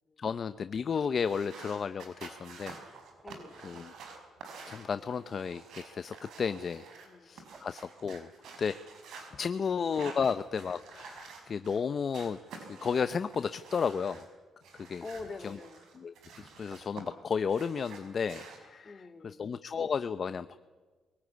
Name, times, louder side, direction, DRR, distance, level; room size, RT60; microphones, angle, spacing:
voice 1, 0.2-2.8 3.6-3.9 4.7-6.8 7.2-8.3 8.6-8.8 9.4-12.4 12.7-14.3 14.8-15.0 15.4-15.6 16.0-18.9 19.2-20.6, left 6 dB, 45° left, 12 dB, 0.7 m, -33 dB
sound 1, 1.2-7.1 7.4-9.3 9.8-11.8 12.1-14.3 14.6-17.0 17.3-18.6, right 5 dB, 75° right, 5.6 m, -49 dB
sound 2, 2.9-3.8 7.2-7.9 10.8-10.9 11.4-12.6 15.9-16.0 16.2-17.2, right 4 dB, 40° right, 3.4 m, -59 dB
voice 2, 3.2-3.6 7.0-7.5 15.0-15.9 18.8-19.4, left 3 dB, 30° left, 8 dB, 2.3 m, -46 dB
22.5 x 18.0 x 9.7 m, 1.4 s
cardioid pair, 90°, 0 cm